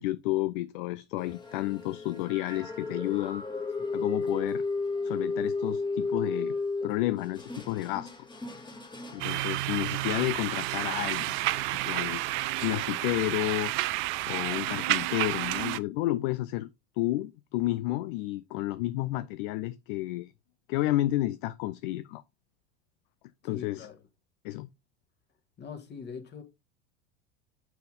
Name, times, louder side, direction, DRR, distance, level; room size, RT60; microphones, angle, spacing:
voice 1, 0.0-3.4 3.9-4.6 5.0-6.5 6.8-8.1 9.1-11.5 11.8-13.7 14.3-16.7 17.0-20.3 20.7-22.2 23.4-23.9 24.4-24.7, left 17 dB, 50° left, 0.5 m, -31 dB
sound 1, 1.2-9.4, left 3 dB, 15° left, 1.7 m, -34 dB
voice 2, 3.8-4.1 23.4-24.0 25.6-26.4, left 6 dB, 30° left, 1.9 m, -43 dB
sound 2, 9.2-15.8, right 17 dB, 40° right, 0.4 m, -30 dB
7.0 x 5.6 x 3.5 m
figure-of-eight pair, 80°, 34 cm